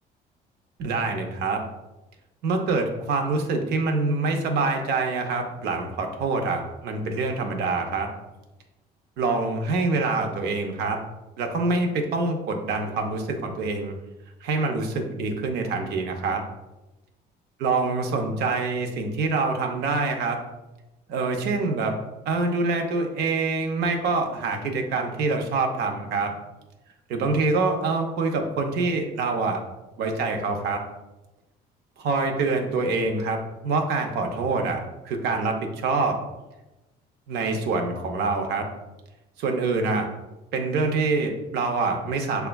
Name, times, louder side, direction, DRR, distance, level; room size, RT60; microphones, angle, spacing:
voice 1, 0.8-1.6 2.4-8.1 9.2-11.0 11.4-14.0 14.4-16.4 17.6-20.4 21.1-21.9 22.3-26.3 27.1-29.6 30.0-30.8 32.0-34.8 35.0-36.2 37.3-38.7 39.4-40.1 40.5-42.5, right 3 dB, 75° right, 4 dB, 0.6 m, -25 dB
6.7 x 2.3 x 2.2 m, 1.0 s
cardioid pair, 110°, 17 cm